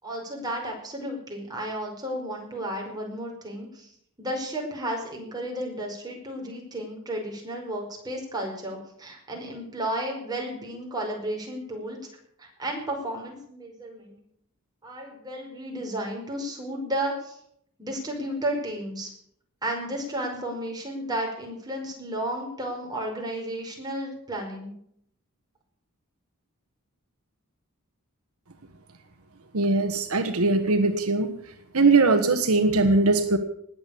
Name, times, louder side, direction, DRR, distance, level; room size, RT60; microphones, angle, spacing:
voice 1, 0.0-3.9 4.2-12.0 12.4-14.2 14.8-17.4 17.8-19.1 19.6-24.7, right 1 dB, 20° right, 0 dB, 5.1 m, -33 dB
voice 2, 29.5-31.3 31.7-33.4, right 3 dB, 75° right, 8 dB, 1.3 m, -21 dB
19.5 x 8.1 x 8.4 m, 0.70 s
head